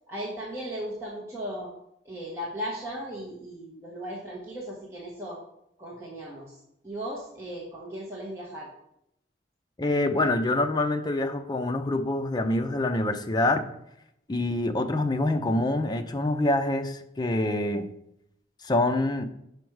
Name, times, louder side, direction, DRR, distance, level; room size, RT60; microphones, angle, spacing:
voice 1, 0.1-1.7 2.0-5.4 5.8-8.7, equal, 15° right, -6 dB, 1.3 m, -37 dB
voice 2, 9.8-13.7 14.3-17.9 18.6-19.3, left 2 dB, 25° left, 8 dB, 0.5 m, -26 dB
6.1 x 5.2 x 4.6 m, 0.78 s
head